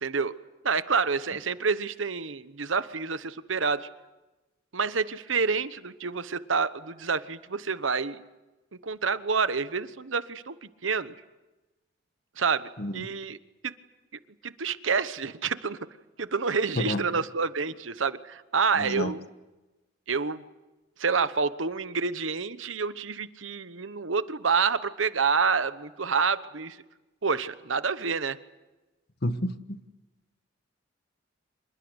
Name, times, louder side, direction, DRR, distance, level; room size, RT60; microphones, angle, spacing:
voice 1, 0.0-0.3 0.6-3.9 4.7-8.2 8.8-11.1 12.4-13.4 13.6-13.7 14.4-15.8 16.2-19.2 20.1-20.4 21.0-26.8 27.2-28.4, right 5 dB, 80° right, 13 dB, 1.1 m, -28 dB
voice 2, 12.8-13.1 16.8-17.0 18.8-19.1 29.2-29.8, left 1 dB, 55° left, 10 dB, 1.4 m, -30 dB
26.5 x 22.5 x 8.1 m, 1.1 s
head